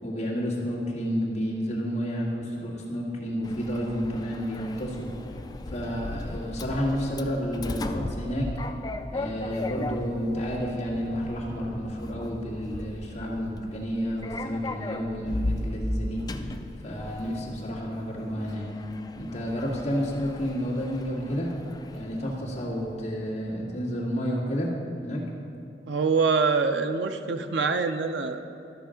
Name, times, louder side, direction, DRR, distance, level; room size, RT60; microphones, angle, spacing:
voice 1, 0.0-5.1 5.7-8.5 9.1-16.2 16.8-18.7 19.2-21.5 21.9-24.7 25.0-25.2, equal, 40° left, -4 dB, 1.9 m, -30 dB
Sliding door, 3.4-23.0, left 2 dB, 20° left, 0.4 m, -37 dB
voice 2, 25.9-28.4, right 4 dB, 80° right, 7 dB, 0.5 m, -25 dB
13.0 x 6.3 x 5.1 m, 2.7 s
head